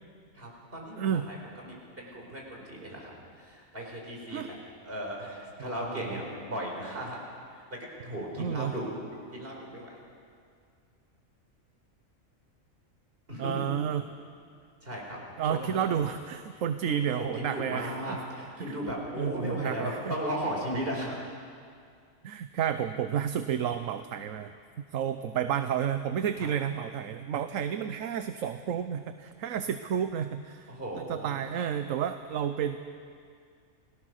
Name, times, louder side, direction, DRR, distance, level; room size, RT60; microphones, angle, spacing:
voice 1, 0.3-4.6 4.8-7.2 7.5-10.0 13.3-13.6 14.8-15.2 15.5-16.0 16.5-21.2 26.4-26.5 30.7-31.4, equal, 45° right, -1 dB, 5.0 m, -36 dB
voice 2, 1.0-1.3 4.3-4.5 5.6-5.7 8.4-8.7 13.4-14.0 15.4-18.2 18.6-20.1 22.2-24.5 24.9-32.8, right 8 dB, 75° right, 9 dB, 1.1 m, -31 dB
30.0 x 17.5 x 6.5 m, 2.2 s
omnidirectional pair, 1.4 m